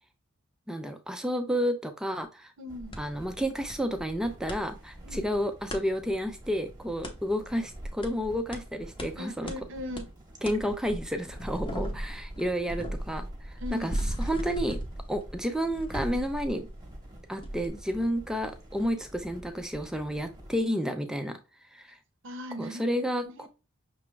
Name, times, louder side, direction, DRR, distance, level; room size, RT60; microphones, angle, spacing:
voice 1, 0.7-2.5 3.0-9.5 10.4-13.9 14.2-14.8 15.1-16.7 17.3-21.4 21.7-22.0 22.6-23.5, equal, 5° right, 0.4 m, -31 dB
voice 2, 2.6-3.0 5.0-5.2 9.1-10.1 13.6-13.9 22.2-23.5, left 1 dB, 60° right, 0.7 m, -39 dB
sound 1, 2.7-20.6, right 1 dB, 20° right, 1.0 m, -46 dB
sound 2, 2.9-3.0 3.7-3.8 4.1-4.6 5.7-5.8 7.0-7.2 8.0-8.1 8.5-8.6 9.0-9.1 9.5-9.6 10.0-10.1 10.4-10.6 11.0-17.1 17.4-17.7, equal, 25° left, 0.8 m, -36 dB
5.9 x 2.3 x 3.1 m
head